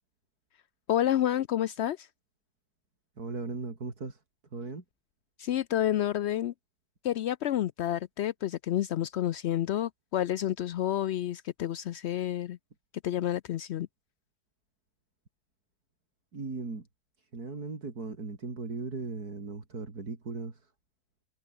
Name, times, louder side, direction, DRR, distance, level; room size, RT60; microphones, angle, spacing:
voice 1, 0.9-2.1 5.4-6.5 7.0-12.6 13.0-13.9, left 12 dB, 80° left, 0.5 m, -29 dB
voice 2, 3.2-4.2 4.5-4.8 16.3-16.9 17.3-20.6, right 4 dB, 65° right, 3.9 m, -37 dB
omnidirectional pair, 1.8 m